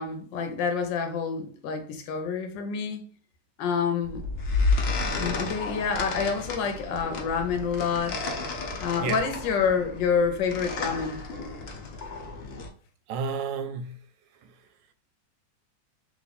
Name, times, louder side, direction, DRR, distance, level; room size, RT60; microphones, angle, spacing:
voice 1, 0.0-3.0 3.6-4.3 5.2-8.2 8.8-11.2, left 6 dB, 90° left, 1.4 m, -28 dB
sound 1, 4.0-12.7, left 3 dB, 55° left, 0.7 m, -31 dB
voice 2, 13.1-14.0 14.4-14.5, right 5 dB, 85° right, 1.2 m, -31 dB
3.2 x 3.1 x 4.1 m
omnidirectional pair, 1.9 m